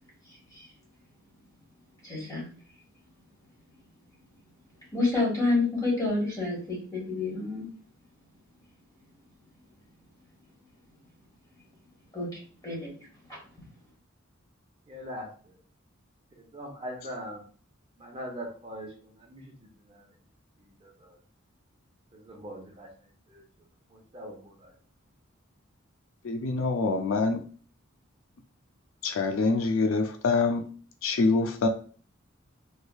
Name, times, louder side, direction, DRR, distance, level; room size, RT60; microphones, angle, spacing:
voice 1, 2.0-2.4 4.9-7.7 12.1-12.3 12.6-12.9, left 3 dB, 15° left, -5 dB, 1.7 m, -28 dB
voice 2, 14.9-15.6 16.4-17.5 18.0-20.1 20.6-21.2 22.1-22.9 23.3-23.4 23.9-24.7, equal, 25° right, 0 dB, 0.6 m, -42 dB
voice 3, 26.2-27.4 29.0-30.7 31.0-31.7, left 3 dB, 75° left, 5 dB, 0.4 m, -25 dB
3.4 x 3.2 x 2.3 m, 0.42 s
head